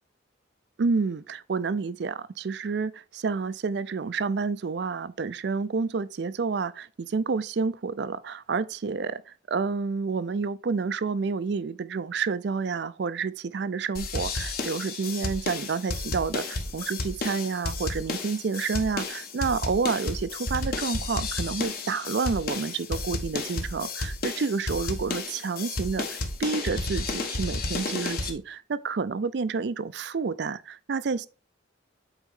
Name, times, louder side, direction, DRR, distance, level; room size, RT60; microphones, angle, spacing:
voice 1, 0.8-31.3, right 4 dB, 60° right, 0.4 m, -29 dB
sound 1, 13.9-28.3, left 2 dB, 50° left, 1.2 m, -32 dB
8.1 x 4.3 x 3.6 m
head